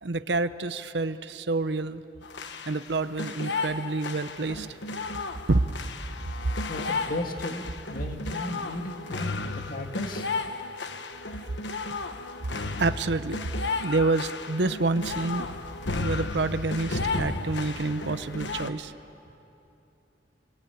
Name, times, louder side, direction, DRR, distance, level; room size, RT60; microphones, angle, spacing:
voice 1, 0.0-2.0 2.7-4.7 5.5-5.6 12.8-13.4 13.8-15.5 16.0-18.9, right 3 dB, 70° right, 12 dB, 0.9 m, -28 dB
sound 1, 2.2-18.7, left 3 dB, 80° left, 1.3 m, -33 dB
voice 2, 6.6-10.3, left 1 dB, 50° left, 4 dB, 2.1 m, -35 dB
24.5 x 23.5 x 9.1 m, 2.9 s
head